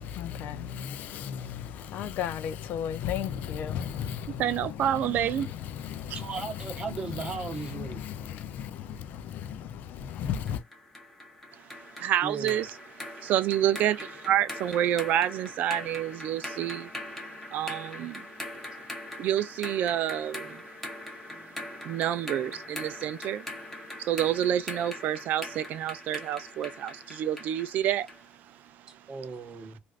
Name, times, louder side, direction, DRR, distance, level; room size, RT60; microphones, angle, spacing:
voice 1, 0.0-10.6, left 9 dB, 55° left, 0.4 m, -35 dB
voice 2, 4.4-5.5 6.1-6.2 12.0-12.7 13.2-16.9 17.5-18.3 19.2-20.6 21.8-23.5 24.0-28.1, right 11 dB, 55° right, 0.4 m, -28 dB
voice 3, 6.1-8.0 12.2-12.6 18.5-18.6 21.3-21.6 29.1-29.8, right 4 dB, 25° right, 0.8 m, -37 dB
sound 1, 10.5-28.3, left 1 dB, 5° left, 0.8 m, -41 dB
3.2 x 2.5 x 2.4 m
cardioid pair, 165°, 3 cm